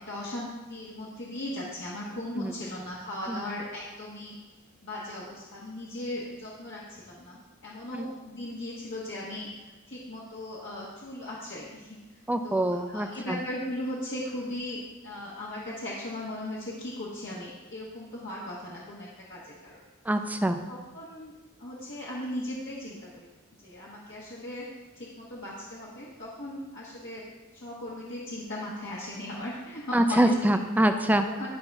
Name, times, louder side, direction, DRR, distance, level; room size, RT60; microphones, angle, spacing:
voice 1, 0.0-4.4 4.8-19.8 20.7-21.3 21.6-23.3 23.6-24.7 24.9-27.2 27.5-30.3 31.4-31.5, left 1 dB, 55° left, -6 dB, 1.3 m, -38 dB
voice 2, 12.3-13.4 20.1-20.6 29.9-31.3, right 1 dB, 10° right, 7 dB, 0.5 m, -25 dB
11.5 x 5.4 x 3.5 m, 1.2 s
head